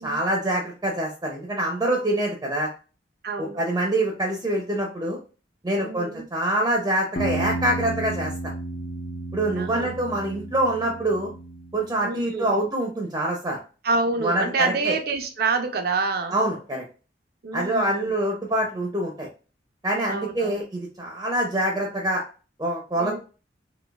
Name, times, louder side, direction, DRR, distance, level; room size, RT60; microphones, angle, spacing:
voice 1, 0.0-2.7 3.4-5.2 5.6-8.5 9.3-11.3 11.7-13.6 14.2-15.0 16.3-16.8 17.5-19.3 19.8-22.2 22.6-23.2, right 1 dB, 20° right, 0.6 m, -25 dB
voice 2, 3.2-3.6 5.8-6.3 9.5-10.0 12.0-12.7 13.8-16.4 17.4-18.2 20.1-20.6 23.0-23.2, right 4 dB, 60° right, 0.5 m, -27 dB
sound 1, 7.2-11.8, right 2 dB, 50° left, 0.6 m, -32 dB
3.9 x 2.6 x 2.3 m
head